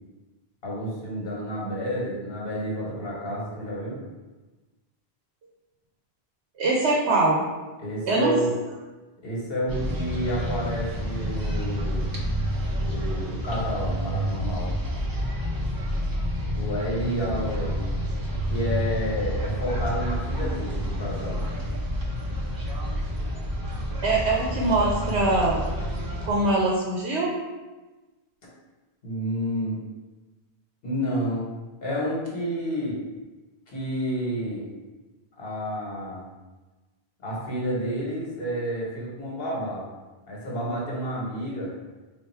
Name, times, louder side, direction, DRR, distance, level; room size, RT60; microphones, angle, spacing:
voice 1, 0.6-4.0 7.8-8.5 9.2-12.0 12.8-14.7 16.5-17.8 18.5-21.4 29.0-29.8 30.8-31.5 31.8-33.0 33.7-34.7 35.4-36.2 37.2-39.8 40.3-41.7, equal, 65° left, -4 dB, 1.2 m, -30 dB
voice 2, 6.6-7.4 8.1-8.3 24.0-25.7 26.2-27.3, right 2 dB, 85° right, -3 dB, 0.9 m, -23 dB
sound 1, 9.7-26.3, equal, 30° right, 0.4 m, -29 dB
3.4 x 2.5 x 4.2 m, 1.2 s
omnidirectional pair, 1.1 m